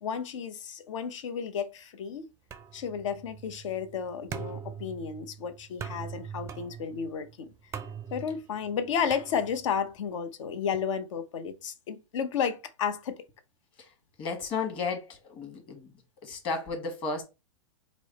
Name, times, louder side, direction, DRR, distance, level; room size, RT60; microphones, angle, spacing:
voice 1, 0.0-2.3 2.7-7.5 8.1-13.2, left 7 dB, 70° left, 0.8 m, -32 dB
sound 1, 2.5-9.9, right 7 dB, 15° right, 0.4 m, -43 dB
voice 2, 14.2-15.9 16.2-17.2, left 4 dB, 30° left, 1.4 m, -33 dB
4.6 x 2.0 x 4.0 m
hypercardioid pair, 130°, 17 cm